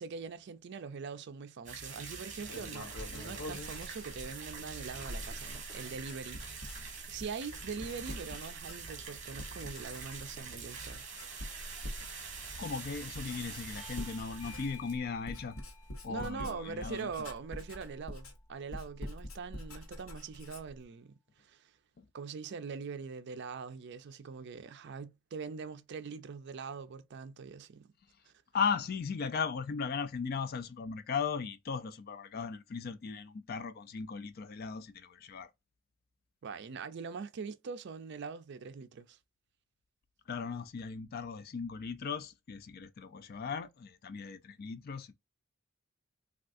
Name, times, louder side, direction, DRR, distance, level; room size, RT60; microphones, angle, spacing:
voice 1, 0.0-11.0 16.1-21.7 22.1-27.9 28.3-28.4 36.4-39.2, right 5 dB, 55° right, 0.4 m, -43 dB
sound 1, 1.7-16.0 16.2-16.3 16.6-16.7 17.1-17.2, right 5 dB, 40° right, 1.1 m, -45 dB
Writing, 2.4-9.1 9.4-10.6 10.9-20.8, left 1 dB, 90° left, 0.9 m, -46 dB
voice 2, 12.6-15.6 16.0-17.1 22.0-22.1 28.5-35.5 40.3-45.1, left 5 dB, 45° left, 0.4 m, -37 dB
Bell / Doorbell, 13.8-18.8, left 7 dB, 15° right, 0.9 m, -57 dB
3.4 x 2.4 x 2.5 m
head